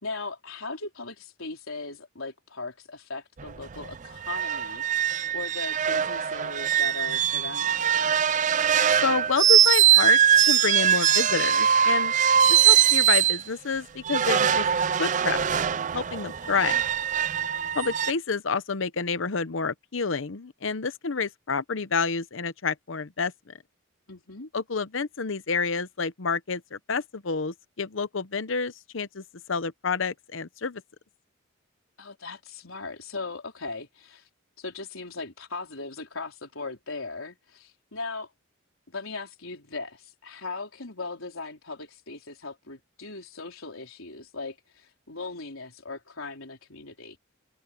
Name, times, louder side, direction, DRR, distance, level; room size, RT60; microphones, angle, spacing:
voice 1, 0.0-4.8 5.3-8.2 16.2-16.8 24.1-24.5 32.0-34.3 34.6-38.3 38.9-47.2, left 3 dB, 85° left, 3.9 m, -38 dB
sound 1, 3.4-3.5 3.8-3.9 4.2-13.4 14.0-18.1, right 9 dB, 35° right, 0.4 m, -22 dB
voice 2, 8.9-10.2 10.5-12.1 12.5-14.7 15.0-15.6 15.9-16.8 17.7-23.5 24.5-29.2 29.5-30.8, left 5 dB, 70° left, 0.8 m, -29 dB
head